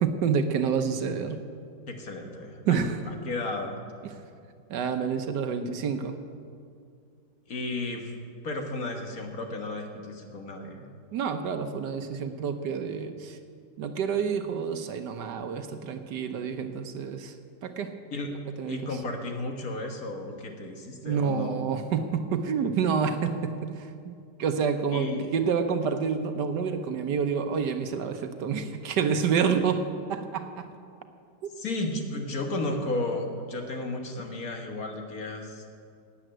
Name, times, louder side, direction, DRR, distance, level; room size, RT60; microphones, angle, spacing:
voice 1, 0.0-1.4 2.7-3.0 4.0-4.2 4.7-6.2 11.1-13.4 13.8-17.3 17.6-17.9 18.6-18.8 21.0-23.9 24.4-30.7 31.4-31.5, right 6 dB, 70° right, 8 dB, 1.4 m, -28 dB
voice 2, 1.9-2.8 3.1-3.8 7.5-8.1 8.4-10.9 18.1-18.3 18.7-21.6 24.9-25.3 31.6-35.6, left 2 dB, 50° left, 3 dB, 1.8 m, -33 dB
12.5 x 8.8 x 9.1 m, 2.3 s
omnidirectional pair, 2.0 m